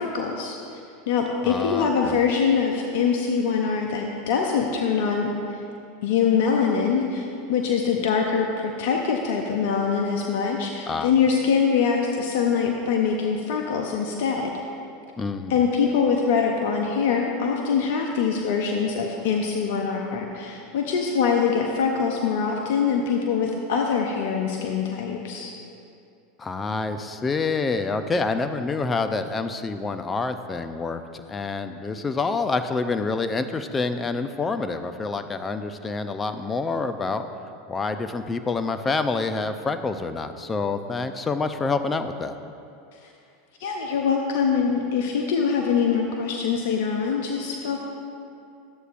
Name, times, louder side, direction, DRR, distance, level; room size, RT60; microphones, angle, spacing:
voice 1, 0.0-5.6 6.0-14.6 15.5-25.5 43.6-47.8, left 6 dB, 65° left, 2 dB, 0.6 m, -24 dB
voice 2, 1.4-2.2 10.9-11.1 15.2-15.6 26.4-37.2 37.7-42.3, left 4 dB, 20° left, 9 dB, 0.5 m, -27 dB
13.0 x 7.9 x 2.5 m, 2.6 s
hypercardioid pair, 90°, 0 cm